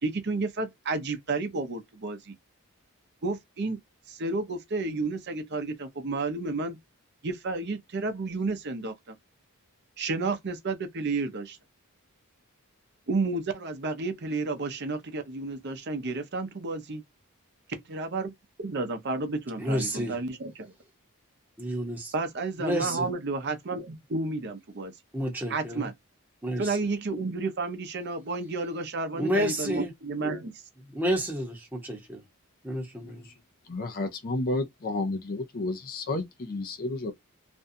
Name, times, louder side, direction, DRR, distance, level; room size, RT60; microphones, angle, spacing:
voice 1, 0.0-2.3 3.2-3.8 4.1-6.8 7.2-9.1 10.0-11.6 13.1-17.0 17.9-18.3 18.6-20.5 22.1-24.9 25.5-25.9 26.6-30.6, right 3 dB, 50° right, 0.6 m, -31 dB
voice 2, 19.6-20.1 21.6-22.1 22.6-23.1 25.1-25.9 26.4-26.8 29.1-29.9 30.9-32.2 32.6-33.3, equal, 10° right, 0.9 m, -30 dB
voice 3, 33.7-37.1, left 2 dB, 40° left, 0.5 m, -31 dB
2.6 x 2.3 x 2.5 m
head